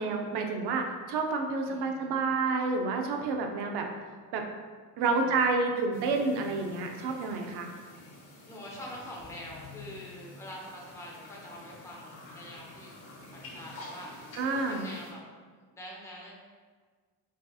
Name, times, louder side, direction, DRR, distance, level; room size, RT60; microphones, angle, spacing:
voice 1, 0.0-3.9 4.3-4.4 5.0-7.7 14.4-14.8, right 3 dB, 85° right, 3 dB, 0.6 m, -29 dB
voice 2, 1.6-2.1 5.0-5.5 7.3-7.7 8.5-13.0 13.3-15.2 15.7-16.3, left 1 dB, 10° left, -4 dB, 0.6 m, -45 dB
sound 1, 5.9-15.1, left 2 dB, 70° left, 1.1 m, -48 dB
4.9 x 2.7 x 2.4 m, 1.5 s
cardioid pair, 160°, 39 cm